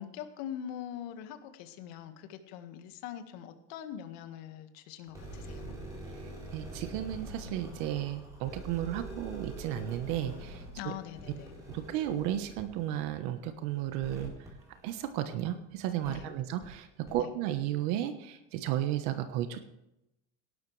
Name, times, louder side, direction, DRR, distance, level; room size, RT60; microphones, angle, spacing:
voice 1, 0.0-5.7 10.8-11.5 16.1-16.3 17.1-17.3, left 10 dB, 70° left, 7 dB, 1.8 m, -43 dB
sound 1, 5.1-15.5 16.0-16.1 16.6-16.7 17.0-17.1, right 1 dB, 10° right, 4.3 m, -45 dB
voice 2, 6.5-10.9 11.7-14.3 14.8-19.6, right 12 dB, 65° right, 8 dB, 1.2 m, -34 dB
18.0 x 11.5 x 3.3 m, 0.87 s
cardioid pair, 170°, 31 cm